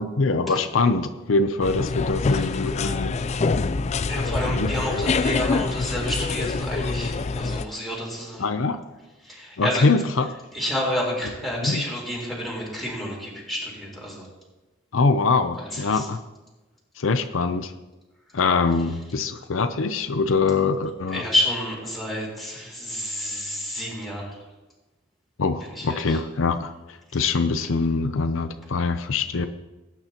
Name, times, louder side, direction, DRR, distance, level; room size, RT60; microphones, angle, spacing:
voice 1, 0.0-3.2 4.5-4.7 8.4-8.8 9.6-10.3 11.6-11.8 14.9-16.2 17.0-17.7 18.3-21.2 25.4-29.4, left 4 dB, 85° left, 9 dB, 0.6 m, -23 dB
sound 1, 1.6-7.6, left 4 dB, 35° left, 0.4 m, -25 dB
voice 2, 2.2-3.0 3.7-3.8 4.1-8.4 9.2-9.8 10.5-14.3 15.6-16.1 21.1-24.4 25.7-26.2, equal, ahead, -5 dB, 4.0 m, -30 dB
18.0 x 9.5 x 2.9 m, 1.1 s
head